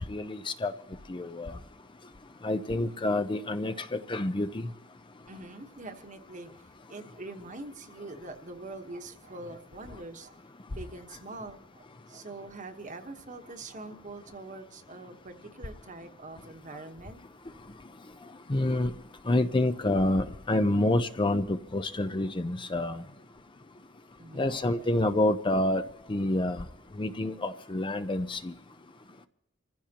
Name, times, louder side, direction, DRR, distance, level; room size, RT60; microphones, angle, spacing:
voice 1, 0.1-0.7 1.1-1.5 2.4-4.7 18.5-18.9 19.3-23.0 24.4-25.8 26.1-26.6 27.0-28.5, left 1 dB, 25° left, 0.6 m, -28 dB
voice 2, 5.3-10.4 10.7-17.2 24.2-24.9, right 2 dB, 40° right, 1.2 m, -44 dB
26.5 x 15.0 x 2.9 m
head